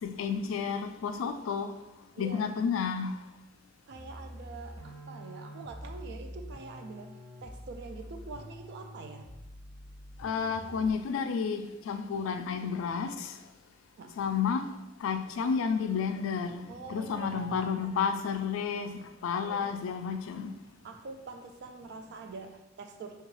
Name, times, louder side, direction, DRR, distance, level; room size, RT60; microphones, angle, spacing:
voice 1, 0.0-1.7 2.2-3.2 10.2-13.4 14.2-14.7 15.0-16.6 16.9-20.5, left 6 dB, 85° left, 0.3 m, -31 dB
voice 2, 2.1-2.5 3.9-9.3 14.0-14.2 16.7-17.9 19.4-19.8 20.7-23.2, right 3 dB, 60° right, 0.3 m, -45 dB
sound 1, 3.9-11.1, equal, 30° right, 0.7 m, -46 dB
3.6 x 2.3 x 3.0 m
head